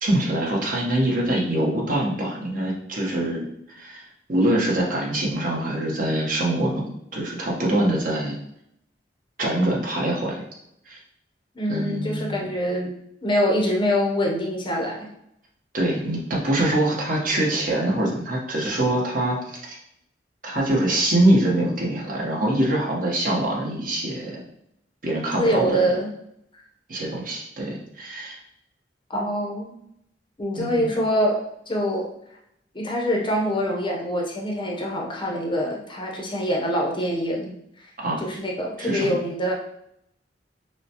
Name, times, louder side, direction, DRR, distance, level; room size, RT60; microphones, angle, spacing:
voice 1, 0.0-4.0 4.3-6.8 7.1-8.3 9.4-10.4 10.9-11.0 11.7-12.5 15.7-19.8 20.4-24.4 25.0-25.9 26.9-28.4 30.6-30.9 38.0-38.2 38.8-39.1, right 1 dB, 50° right, -3 dB, 1.1 m, -24 dB
voice 2, 11.5-12.9 13.2-15.1 25.4-26.1 29.1-29.7 30.4-32.1 32.7-37.5 38.2-39.5, equal, 30° left, -1 dB, 0.8 m, -24 dB
6.1 x 2.2 x 2.9 m, 0.77 s
head